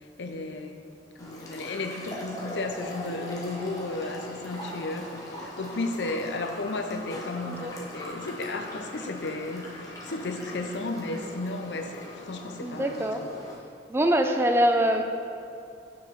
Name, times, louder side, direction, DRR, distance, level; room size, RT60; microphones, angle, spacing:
voice 1, 0.2-0.8 1.2-13.3, left 2 dB, 80° left, 5 dB, 0.6 m, -34 dB
sound 1, 1.2-13.5, left 1 dB, 20° left, 1.0 m, -41 dB
voice 2, 12.6-13.3 13.9-15.0, equal, 15° right, 5 dB, 0.4 m, -24 dB
6.1 x 4.9 x 5.7 m, 2.5 s
head